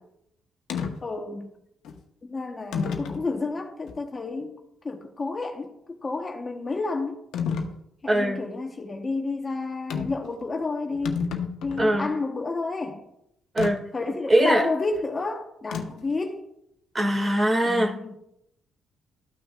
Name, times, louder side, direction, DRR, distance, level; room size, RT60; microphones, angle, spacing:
sound 1, 0.7-0.9 1.8-2.0 2.7-3.2 3.9-4.0 7.3-7.7 9.9-10.3 10.6-10.7 10.9-12.0 13.6-13.7 15.7-16.1, left 6 dB, 85° left, 1.0 m, -30 dB
voice 1, 1.0-1.5 2.2-4.6 4.8-5.7 6.0-7.2 8.0-11.2 11.6-13.0 13.9-16.5 17.6-18.2, left 3 dB, 30° left, 1.0 m, -30 dB
voice 2, 8.1-8.4 11.8-12.1 13.5-13.8 14.3-14.7 16.9-17.9, right 1 dB, 25° right, 2.0 m, -21 dB
13.5 x 6.0 x 2.4 m
cardioid pair, 90°, 0 cm